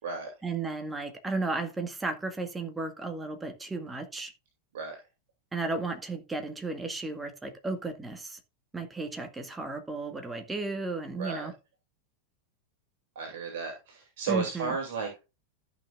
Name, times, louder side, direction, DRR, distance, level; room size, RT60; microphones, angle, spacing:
voice 1, 0.4-4.3 5.5-8.4 8.7-11.5 14.3-14.8, right 3 dB, 10° right, 1.9 m, -34 dB
voice 2, 11.2-11.5 13.1-15.2, right 5 dB, 55° right, 3.0 m, -33 dB
14.0 x 6.0 x 2.5 m
figure-of-eight pair, 90°, 0 cm